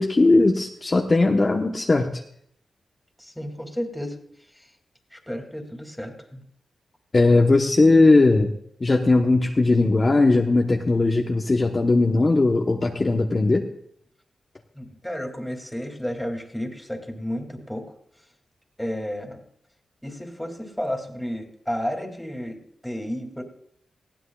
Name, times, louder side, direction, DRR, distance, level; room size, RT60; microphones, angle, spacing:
voice 1, 0.0-2.1 7.1-8.5 8.8-13.7, left 2 dB, 35° left, 2 dB, 1.0 m, -18 dB
voice 2, 3.2-4.2 4.5-4.7 5.1-6.4 14.7-17.9 18.8-19.4 20.0-22.6 22.8-23.4, equal, 5° left, 4 dB, 2.6 m, -32 dB
19.5 x 15.5 x 2.4 m, 0.69 s
cardioid pair, 70°, 0 cm